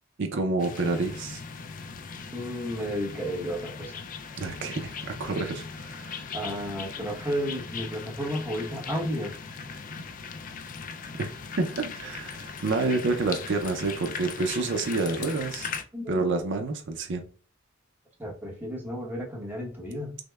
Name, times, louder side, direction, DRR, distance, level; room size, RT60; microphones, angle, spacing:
voice 1, 0.2-1.4 4.4-6.2 11.6-15.7 16.1-17.2, right 3 dB, 60° right, 0.5 m, -28 dB
sound 1, 0.6-15.8, left 5 dB, 40° left, 0.4 m, -39 dB
voice 2, 2.3-4.0 6.3-9.4 15.9-16.4 18.2-20.2, equal, 10° right, 0.9 m, -33 dB
6.2 x 2.1 x 2.3 m
head